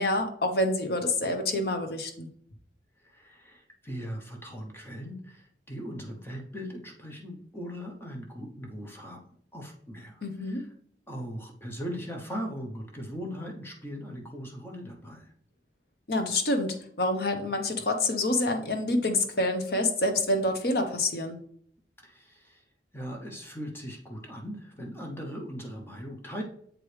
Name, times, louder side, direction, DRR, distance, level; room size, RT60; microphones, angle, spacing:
voice 1, 0.0-2.3 10.2-10.6 16.1-21.4, left 2 dB, 60° left, 5 dB, 0.9 m, -27 dB
voice 2, 3.0-9.2 9.5-10.6 11.1-15.3 22.0-22.6 22.9-26.4, equal, 15° left, 1 dB, 0.9 m, -39 dB
7.5 x 4.7 x 3.3 m, 0.64 s
head